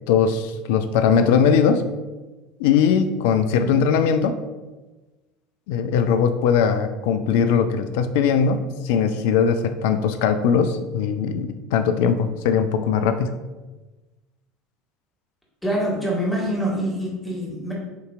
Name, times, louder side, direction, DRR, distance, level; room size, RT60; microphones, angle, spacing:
voice 1, 0.1-1.9 2.6-4.4 5.7-13.4, left 6 dB, 60° left, 9 dB, 0.3 m, -20 dB
voice 2, 15.6-17.7, equal, 5° left, -4 dB, 1.5 m, -25 dB
6.4 x 2.8 x 2.4 m, 1.2 s
figure-of-eight pair, 70°, 0 cm